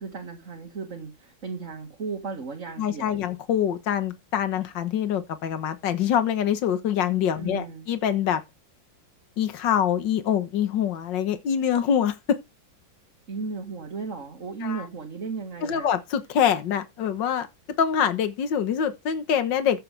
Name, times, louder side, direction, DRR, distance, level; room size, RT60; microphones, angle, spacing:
voice 1, 0.0-3.3 7.4-7.9 13.3-15.9, right 4 dB, 40° right, 2.1 m, -35 dB
voice 2, 2.8-8.4 9.4-12.4 14.6-14.9 15.6-17.5 17.8-19.8, left 8 dB, 65° left, 1.9 m, -25 dB
13.5 x 8.0 x 3.4 m
omnidirectional pair, 2.1 m